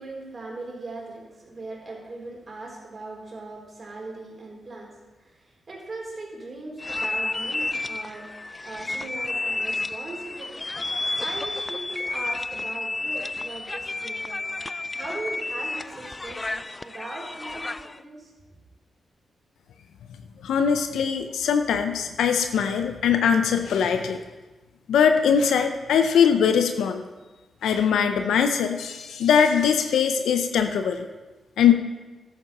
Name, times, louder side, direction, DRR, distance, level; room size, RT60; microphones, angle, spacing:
voice 1, 0.0-10.7 11.2-14.4 14.9-18.6, right 2 dB, 45° right, -1 dB, 3.9 m, -39 dB
sound 1, 6.8-18.0, left 2 dB, 30° left, 0.4 m, -31 dB
voice 2, 20.4-24.2 24.9-27.0 27.6-31.1 31.6-31.7, left 7 dB, 85° left, 7 dB, 0.6 m, -21 dB
12.0 x 8.8 x 4.2 m, 1.2 s
supercardioid pair, 50°, 0 cm